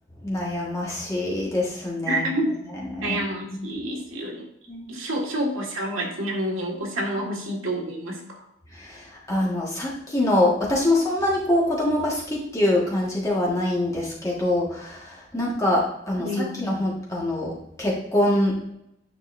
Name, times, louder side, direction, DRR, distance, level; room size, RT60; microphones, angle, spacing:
voice 1, 0.2-2.3 2.9-3.7 4.7-4.9 8.7-18.7, left 1 dB, 15° left, -4 dB, 1.5 m, -25 dB
voice 2, 2.1-2.5 3.0-4.4 4.9-8.2 16.2-16.6, right 1 dB, 80° right, -1 dB, 1.8 m, -28 dB
9.7 x 5.4 x 2.6 m, 0.78 s
head